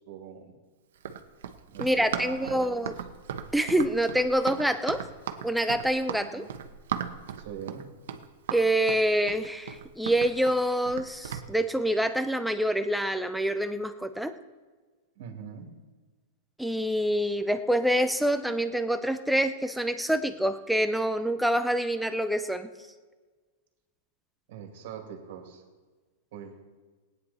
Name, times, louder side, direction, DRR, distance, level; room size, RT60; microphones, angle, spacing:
voice 1, 0.1-0.5 1.7-2.9 6.2-6.6 7.4-7.9 15.2-15.7 24.5-25.6 26.3-26.6, right 8 dB, 45° right, 3 dB, 2.3 m, -42 dB
Run, 1.0-11.5, right 8 dB, 65° right, 1.0 m, -37 dB
voice 2, 1.8-2.9 3.5-5.0 5.4-6.4 8.5-14.3 16.6-22.7, equal, ahead, 9 dB, 0.5 m, -26 dB
19.5 x 9.7 x 4.2 m, 1.4 s
supercardioid pair, 180°, 0 cm